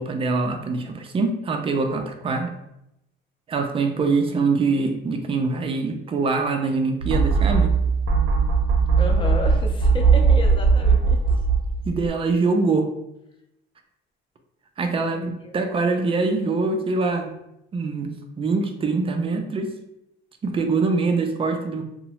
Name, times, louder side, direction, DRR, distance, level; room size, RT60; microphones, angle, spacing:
voice 1, 0.0-2.5 3.5-7.7 11.8-12.9 14.8-17.3 17.7-19.7 20.4-21.8, right 3 dB, 30° right, 5 dB, 0.4 m, -24 dB
sound 1, 7.0-12.1, right 4 dB, 90° right, 0.5 m, -19 dB
voice 2, 9.0-11.2 15.1-16.1, left 1 dB, 25° left, 2 dB, 0.5 m, -32 dB
2.7 x 2.0 x 2.9 m, 0.85 s
cardioid pair, 110°, 20 cm